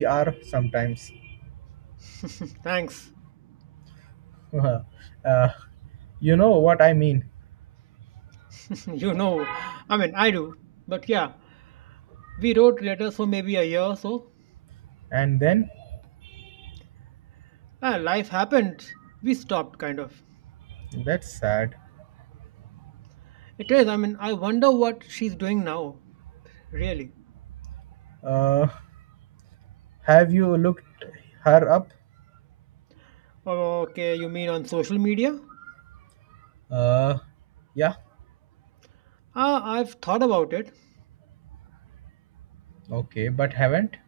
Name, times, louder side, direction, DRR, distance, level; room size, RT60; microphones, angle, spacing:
voice 1, 0.0-1.4 4.5-5.7 6.2-7.2 9.4-9.8 15.1-15.7 16.2-16.7 20.9-21.7 23.6-23.7 28.2-28.8 30.0-31.1 31.4-31.9 36.7-37.2 37.8-38.0 42.9-43.9, right 19 dB, 90° right, 1.3 m, -22 dB
voice 2, 2.0-3.0 8.5-10.5 10.9-11.4 12.4-14.2 17.8-18.9 19.2-20.1 23.6-26.0 26.7-27.1 33.5-35.5 39.3-40.7, right 25 dB, 70° right, 3.1 m, -25 dB
supercardioid pair, 145°, 17 cm